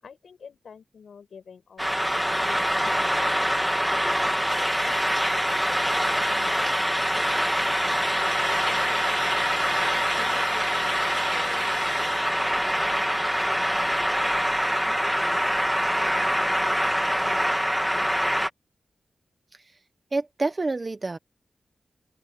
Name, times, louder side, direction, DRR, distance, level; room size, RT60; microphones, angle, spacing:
voice 1, 0.0-3.3 3.5-7.5 8.0-9.5 10.2-14.0 14.8-18.1, left 6 dB, 80° left, 6.0 m, -47 dB
sound 1, 1.8-18.5, equal, ahead, 2.2 m, -24 dB
voice 2, 20.1-21.2, right 3 dB, 30° right, 1.2 m, -27 dB
open air
wide cardioid pair, 105°, 0 cm